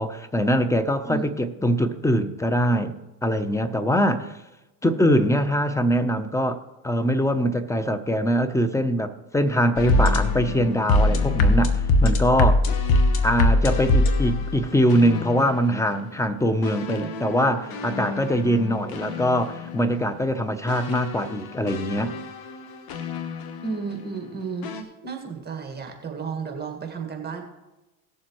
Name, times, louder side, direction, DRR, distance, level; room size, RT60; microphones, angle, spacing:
voice 1, 0.0-2.9 3.2-4.4 4.8-12.7 13.2-22.1, equal, 5° left, 11 dB, 0.7 m, -23 dB
sound 1, 9.8-15.8 16.6-19.9 20.7-23.8 24.6-24.8, left 2 dB, 55° left, 1.4 m, -24 dB
voice 2, 23.6-27.4, right 5 dB, 20° right, 2 dB, 1.9 m, -33 dB
18.0 x 7.3 x 3.1 m, 1.0 s
supercardioid pair, 100°, 44 cm